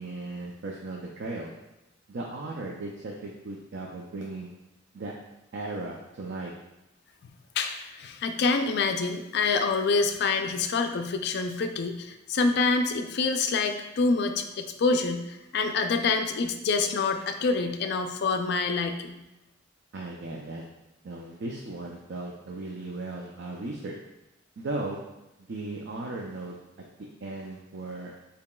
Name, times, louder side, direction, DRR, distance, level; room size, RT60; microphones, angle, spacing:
voice 1, 0.0-1.5 2.1-4.5 4.9-5.1 5.5-6.5 19.9-20.6 21.0-24.0 24.6-25.0 25.5-26.5 27.2-28.1, right 2 dB, 60° right, -1 dB, 0.5 m, -36 dB
voice 2, 7.6-19.2, left 4 dB, 55° left, 6 dB, 0.4 m, -26 dB
6.8 x 2.8 x 2.2 m, 0.97 s
head